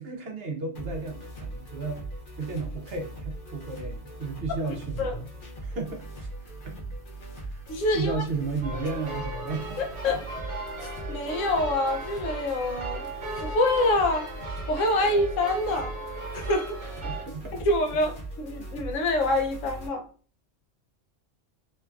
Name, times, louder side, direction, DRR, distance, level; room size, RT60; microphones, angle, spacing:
voice 1, 0.0-2.0 2.3-5.3 5.6-6.8 7.3-9.8 17.0-17.6, right 3 dB, 65° right, 0.7 m, -34 dB
sound 1, 0.7-19.9, right 1 dB, 55° left, 0.7 m, -40 dB
voice 2, 4.7-5.1 7.7-8.2 9.8-10.2 11.1-13.1 13.4-14.3 14.7-15.9 16.3-16.9 17.6-20.0, left 2 dB, 80° left, 0.9 m, -26 dB
sound 2, 8.6-17.2, right 2 dB, 50° right, 1.0 m, -37 dB
3.0 x 2.2 x 2.3 m
omnidirectional pair, 1.3 m